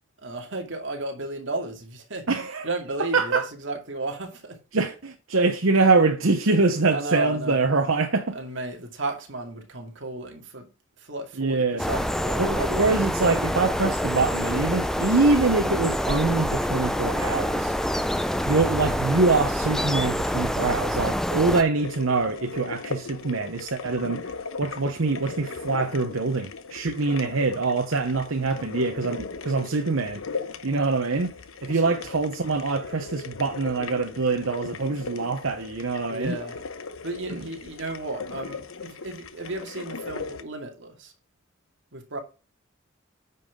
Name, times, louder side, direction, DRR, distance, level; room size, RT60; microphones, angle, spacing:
voice 1, 0.2-2.3 2.6-4.6 6.9-7.6 8.3-10.7 11.0-12.4 28.5-28.7 31.7-31.9 36.1-36.6 37.0-41.1 41.9-42.2, right 2 dB, 65° right, 2.3 m, -33 dB
voice 2, 2.3-2.7 3.1-3.5 4.7-8.3 11.4-11.8 12.4-17.8 18.5-24.3 24.6-30.2 30.6-31.4 31.6-36.4 37.3-37.4, right 3 dB, 85° right, 0.9 m, -24 dB
sound 1, 11.8-21.6, equal, ahead, 0.5 m, -26 dB
sound 2, 21.7-40.4, left 4 dB, 85° left, 0.9 m, -38 dB
9.6 x 5.6 x 3.7 m
head